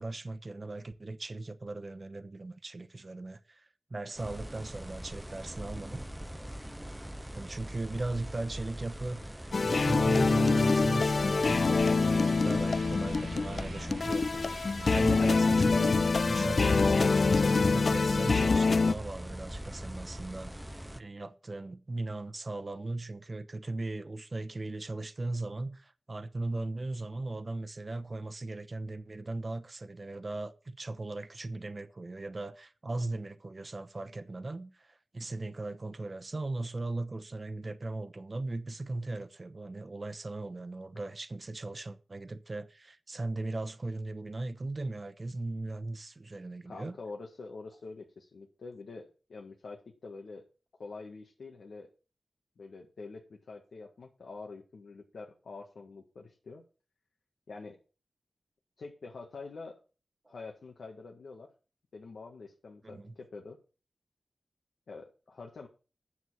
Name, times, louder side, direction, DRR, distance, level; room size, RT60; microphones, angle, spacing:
voice 1, 0.0-6.1 7.3-47.0 60.3-60.4 62.8-63.1, right 2 dB, 40° right, 0.9 m, -38 dB
sound 1, 4.2-21.0, equal, 5° right, 0.7 m, -42 dB
sound 2, 9.0-17.4, right 4 dB, 90° right, 1.6 m, -52 dB
sound 3, 9.5-18.9, left 4 dB, 60° left, 0.4 m, -25 dB
voice 2, 46.6-50.4 50.8-51.9 52.6-56.6 57.5-57.8 58.8-59.8 60.3-61.5 61.9-63.6 64.9-65.7, left 3 dB, 85° left, 1.7 m, -46 dB
9.5 x 7.2 x 6.3 m
wide cardioid pair, 75°, 0 cm